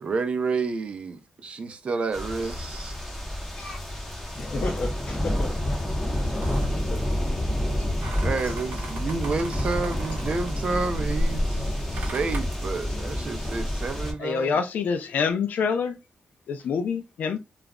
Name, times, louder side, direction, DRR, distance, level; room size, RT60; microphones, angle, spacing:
voice 1, 0.0-3.0 8.2-14.6, right 4 dB, 45° right, 0.4 m, -30 dB
sound 1, 2.1-14.1, left 1 dB, 5° left, 0.6 m, -29 dB
voice 2, 3.5-3.8 4.4-5.7 6.3-7.0 7.8-7.9 8.4-8.6 13.7-13.8, left 2 dB, 50° left, 0.6 m, -35 dB
sound 2, 6.4-12.4, equal, 75° right, 0.8 m, -34 dB
voice 3, 14.2-16.0 16.5-17.4, left 6 dB, 90° left, 0.4 m, -26 dB
2.3 x 2.0 x 3.4 m
wide cardioid pair, 180°, 3 cm